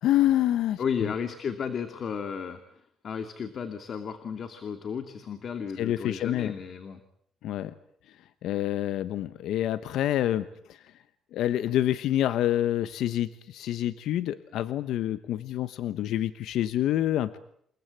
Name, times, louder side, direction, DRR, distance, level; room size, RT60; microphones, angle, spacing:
voice 1, 0.0-1.1 5.8-6.5 7.4-7.7 8.4-10.8 11.3-17.4, left 12 dB, 85° left, 13 dB, 1.0 m, -27 dB
voice 2, 0.8-2.6 3.0-7.0, left 6 dB, 55° left, 8 dB, 2.5 m, -33 dB
29.0 x 19.0 x 9.1 m, 0.70 s
cardioid pair, 90°, 0 cm